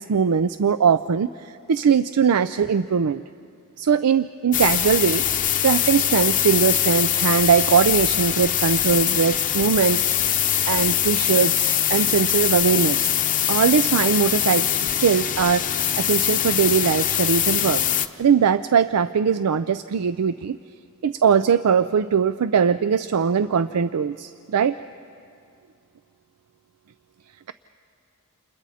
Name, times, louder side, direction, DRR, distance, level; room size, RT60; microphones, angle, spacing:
voice 1, 0.0-3.2 3.8-5.2 5.6-10.0 10.7-13.1 13.5-17.8 18.2-20.6 21.0-24.8, right 6 dB, 90° right, 12 dB, 0.4 m, -21 dB
sound 1, 4.5-18.1, left 10 dB, 35° left, 0.7 m, -22 dB
29.5 x 28.5 x 4.2 m, 2.4 s
head